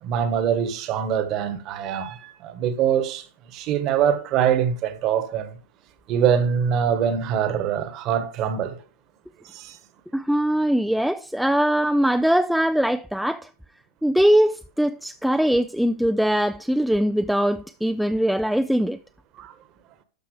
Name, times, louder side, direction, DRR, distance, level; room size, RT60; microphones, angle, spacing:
voice 1, 0.0-3.3 3.5-5.6 6.1-8.8 9.5-9.8 19.4-19.5, right 8 dB, 45° right, 1.3 m, -23 dB
voice 2, 10.1-13.5 14.0-19.0, equal, ahead, 0.4 m, -21 dB
12.0 x 5.7 x 3.2 m
hypercardioid pair, 105°, 0 cm